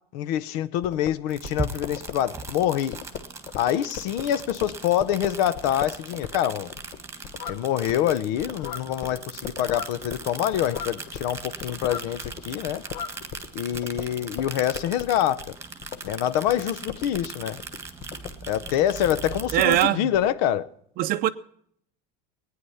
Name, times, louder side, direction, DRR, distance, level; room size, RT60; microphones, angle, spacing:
voice 1, 0.1-3.0 3.6-6.7 7.5-12.8 13.5-15.6 16.0-17.6 18.5-20.7, left 11 dB, 70° left, 0.8 m, -26 dB
sound 1, 0.8-11.3 11.6-20.3, left 8 dB, 40° left, 0.8 m, -40 dB
sound 2, 1.3-19.9, right 4 dB, 15° right, 1.5 m, -39 dB
sound 3, 7.4-7.8 8.5-9.0 9.6-10.1 10.7-11.0 11.8-13.2, left 7 dB, 90° left, 1.1 m, -38 dB
voice 2, 19.5-20.1 21.0-21.3, right 14 dB, 45° right, 0.6 m, -21 dB
18.0 x 9.6 x 5.6 m
supercardioid pair, 125°, 21 cm